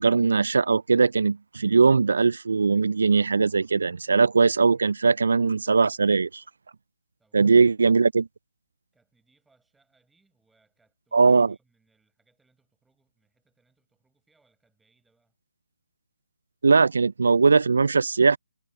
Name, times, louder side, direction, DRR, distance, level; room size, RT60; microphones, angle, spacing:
voice 1, 0.0-6.4 7.3-8.3 11.1-11.5 16.6-18.4, right 4 dB, 70° right, 0.4 m, -20 dB
voice 2, 7.2-8.0 8.9-15.3, right 3 dB, 5° right, 7.3 m, -69 dB
figure-of-eight pair, 145°, 0 cm